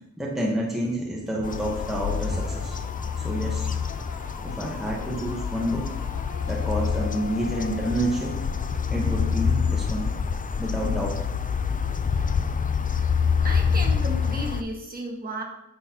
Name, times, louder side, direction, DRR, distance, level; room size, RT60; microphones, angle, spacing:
voice 1, 0.2-2.8 3.2-3.7 4.4-5.9 6.5-8.4 8.9-10.1 10.6-11.2, right 1 dB, ahead, -3 dB, 1.1 m, -28 dB
sound 1, 1.4-14.6, left 6 dB, 30° left, 0.4 m, -27 dB
sound 2, 1.5-9.0, left 5 dB, 70° left, 0.7 m, -43 dB
voice 2, 13.4-15.4, right 1 dB, 30° right, -1 dB, 1.6 m, -34 dB
9.7 x 6.4 x 2.8 m, 0.88 s
wide cardioid pair, 150°, 31 cm